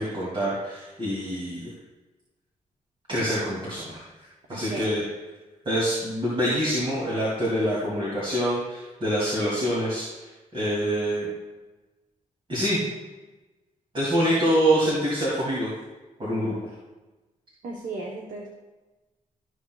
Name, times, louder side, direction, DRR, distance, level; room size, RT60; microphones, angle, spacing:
voice 1, 0.0-1.7 3.1-4.0 4.5-5.0 5.6-10.0 10.5-11.3 12.5-12.8 13.9-15.7 16.2-16.5, equal, 40° right, -6 dB, 2.8 m, -25 dB
voice 2, 4.5-4.9 17.6-18.5, right 2 dB, 75° right, -1 dB, 1.1 m, -35 dB
13.5 x 6.2 x 2.4 m, 1.1 s
cardioid pair, 70°, 14 cm